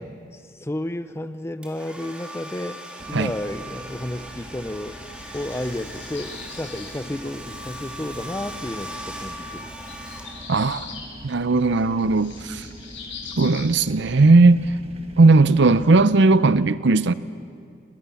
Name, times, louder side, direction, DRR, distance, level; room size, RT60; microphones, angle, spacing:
voice 1, 0.0-2.8 3.1-5.0 5.3-9.7, left 1 dB, 15° left, 11 dB, 0.6 m, -32 dB
Domestic sounds home sounds, 1.6-10.8, equal, 5° right, 3.3 m, -39 dB
sound 1, 3.0-16.1, right 1 dB, 30° right, 1.4 m, -43 dB
sound 2, 4.7-6.9 8.5-8.6 9.9-11.1 11.6-13.7 14.6-14.7 15.2-15.4, left 6 dB, 65° left, 7.7 m, -41 dB
voice 2, 10.5-10.9 11.2-12.7 13.4-14.6 15.2-17.1, right 3 dB, 65° right, 15 dB, 0.6 m, -17 dB
28.5 x 25.5 x 7.1 m, 2.4 s
head